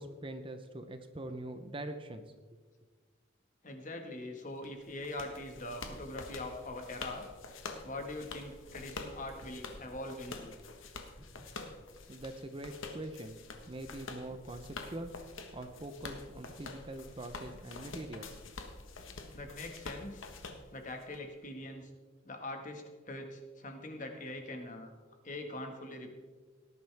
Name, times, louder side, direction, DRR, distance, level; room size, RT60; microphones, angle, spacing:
voice 1, 0.0-2.2 12.1-13.4 13.6-15.1 15.5-18.4, right 1 dB, 25° right, 8 dB, 0.7 m, -43 dB
voice 2, 3.6-7.6 7.8-10.5 11.2-11.4 19.3-20.3 20.7-21.9 22.3-24.9 25.2-26.1, left 2 dB, 40° left, 3 dB, 1.7 m, -43 dB
sound 1, 4.6-21.2, left 3 dB, 80° left, 1.4 m, -47 dB
18.5 x 11.0 x 3.5 m, 1.4 s
head